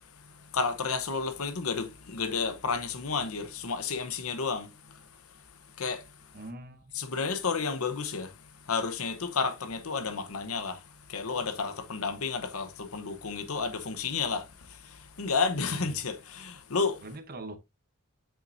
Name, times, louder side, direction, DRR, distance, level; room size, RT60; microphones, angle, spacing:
voice 1, 0.5-4.7 5.8-6.0 6.9-8.3 8.7-10.8 11.1-14.4 15.2-17.0, left 5 dB, 70° left, 0.9 m, -31 dB
voice 2, 6.3-6.9 15.7-15.9 17.0-17.6, right 2 dB, 45° right, 0.9 m, -42 dB
7.4 x 5.7 x 2.6 m
head